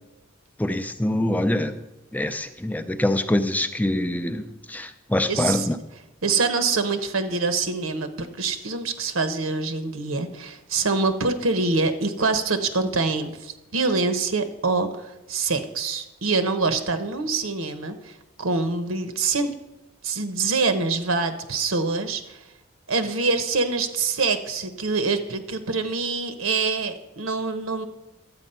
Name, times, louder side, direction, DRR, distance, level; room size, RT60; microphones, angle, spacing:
voice 1, 0.6-1.8 2.1-5.8, left 1 dB, 10° left, 8 dB, 0.5 m, -24 dB
voice 2, 5.3-5.7 6.2-18.1 18.4-19.5 20.0-22.4 22.9-27.9, right 4 dB, 80° right, 9 dB, 0.9 m, -25 dB
11.5 x 8.3 x 5.5 m, 1.0 s
head